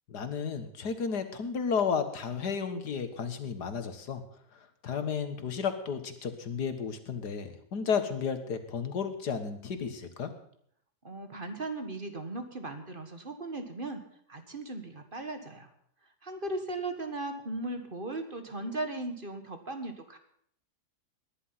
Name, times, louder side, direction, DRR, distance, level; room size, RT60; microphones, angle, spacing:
voice 1, 0.1-4.2 4.5-10.3, left 6 dB, 85° left, 9 dB, 2.1 m, -33 dB
voice 2, 11.0-14.0 14.3-15.7 16.2-20.2, right 2 dB, 35° right, 7 dB, 1.7 m, -37 dB
19.0 x 11.0 x 5.8 m, 0.65 s
omnidirectional pair, 1.7 m